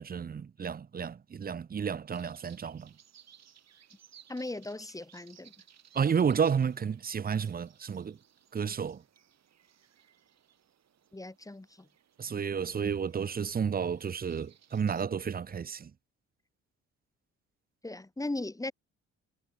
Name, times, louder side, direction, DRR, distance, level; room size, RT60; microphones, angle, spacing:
voice 1, 0.0-2.9 5.9-8.2 8.5-9.0 12.2-15.9, right 7 dB, 30° right, 0.7 m, -31 dB
sound 1, 2.1-15.0, right 9 dB, 60° right, 6.4 m, -61 dB
voice 2, 4.3-5.5 11.1-11.7 17.8-18.7, left 2 dB, 10° left, 1.5 m, -37 dB
cardioid pair, 90°, 30 cm